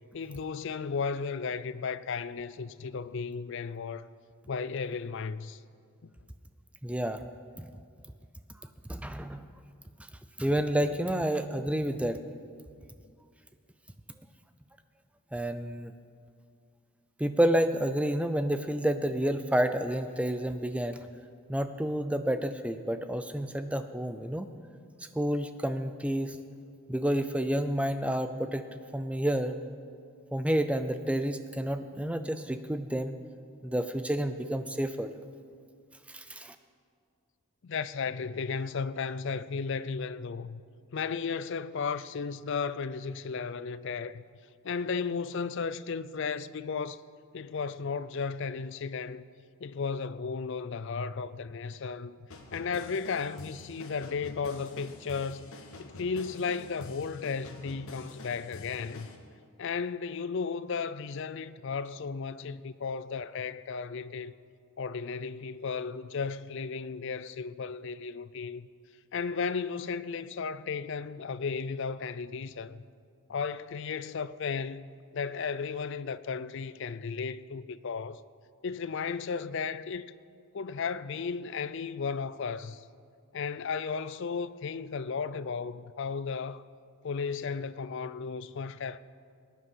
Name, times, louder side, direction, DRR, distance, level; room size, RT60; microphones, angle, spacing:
voice 1, 0.1-4.1 4.5-5.6 6.0-6.1 37.6-40.6 40.9-44.2 44.6-47.0 47.3-49.2 49.6-52.2 52.5-55.5 55.8-59.1 59.6-64.3 64.8-68.7 69.1-72.8 73.3-78.2 78.6-80.1 80.5-82.8 83.3-86.6 87.0-89.0, left 5 dB, 55° left, 0.4 m, -34 dB
voice 2, 6.8-7.2 7.6-7.7 8.9-9.4 10.4-12.2 15.3-15.9 17.2-21.0 21.5-24.5 25.1-26.4 26.9-28.7 28.9-29.6 30.3-33.2 33.6-35.1 36.1-36.5, right 1 dB, 5° right, 0.5 m, -29 dB
sound 1, 52.3-59.2, left 2 dB, 70° left, 1.4 m, -47 dB
20.0 x 9.6 x 5.6 m
head